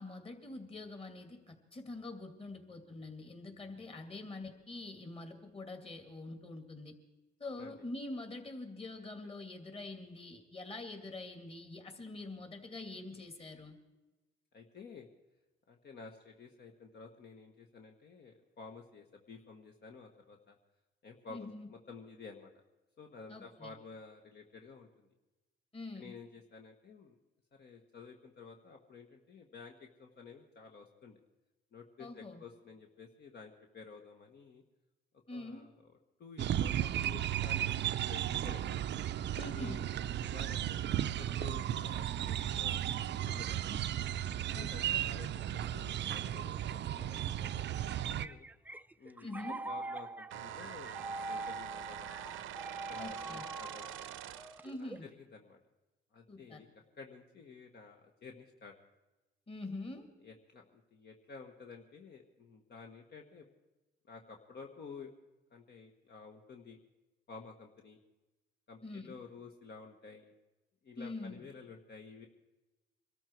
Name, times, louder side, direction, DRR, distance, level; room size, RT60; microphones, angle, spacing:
voice 1, 0.0-6.9 7.4-13.7 21.3-21.7 23.3-23.7 25.7-26.1 32.0-32.4 35.3-35.7 39.4-39.8 43.7-43.8 44.5-45.2 49.2-49.6 53.0-53.4 54.6-55.0 56.3-56.6 59.5-60.1 68.8-69.1 71.0-71.4, left 2 dB, 30° left, 6 dB, 2.5 m, -45 dB
voice 2, 7.5-7.8 14.5-15.1 15.7-20.6 21.0-22.5 23.0-25.1 25.9-27.2 27.5-31.2 31.7-34.6 35.3-38.7 39.3-43.7 44.5-47.9 48.2-48.5 49.0-52.1 52.9-54.0 54.8-55.6 56.1-58.7 60.2-63.5 64.1-65.1 65.5-66.8 67.3-68.0 68.7-70.3 70.8-72.3, left 5 dB, 55° left, 2 dB, 1.6 m, -52 dB
sound 1, 36.4-48.3, right 11 dB, 65° right, 0.6 m, -35 dB
sound 2, 47.6-55.2, right 2 dB, 10° right, 0.4 m, -44 dB
sound 3, 50.3-54.7, right 11 dB, 90° right, 0.8 m, -45 dB
23.5 x 13.0 x 4.7 m, 1.1 s
cardioid pair, 90°, 20 cm